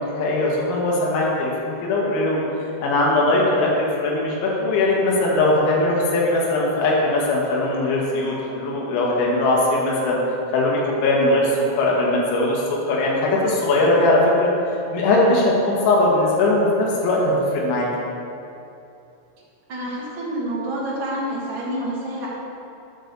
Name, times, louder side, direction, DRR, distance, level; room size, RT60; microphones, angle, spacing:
voice 1, 0.0-2.4 2.8-10.2 10.5-14.5 14.9-17.9, left 2 dB, 80° left, -4 dB, 3.9 m, -20 dB
voice 2, 19.7-22.3, right 1 dB, 70° right, -8 dB, 1.2 m, -28 dB
11.5 x 4.0 x 6.7 m, 2.7 s
omnidirectional pair, 5.4 m